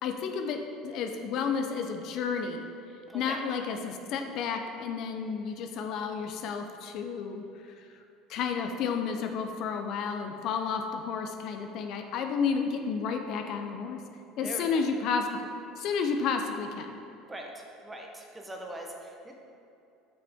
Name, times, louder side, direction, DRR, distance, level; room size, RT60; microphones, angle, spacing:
voice 1, 0.0-2.6 3.1-7.4 8.3-14.0 14.4-15.3 15.8-17.0, left 6 dB, 60° left, 5 dB, 0.6 m, -31 dB
voice 2, 3.1-3.4 14.4-14.8 17.2-19.3, right 1 dB, 15° right, 1 dB, 1.1 m, -42 dB
7.9 x 5.9 x 3.6 m, 2.7 s
supercardioid pair, 95°, 0 cm